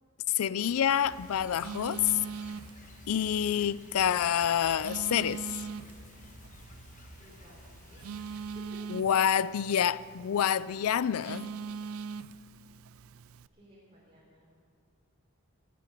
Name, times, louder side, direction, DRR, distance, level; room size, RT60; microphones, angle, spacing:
voice 1, 0.3-2.1 3.1-5.5 8.9-11.5, left 9 dB, 80° left, 0.4 m, -27 dB
Telephone, 0.6-13.5, right 5 dB, 75° right, 0.4 m, -43 dB
sound 1, 1.0-8.6, left 1 dB, 35° left, 1.2 m, -52 dB
voice 2, 7.2-7.6 7.9-8.0 8.5-8.8 13.5-14.5, equal, 30° right, 3.8 m, -56 dB
15.5 x 9.4 x 9.2 m
head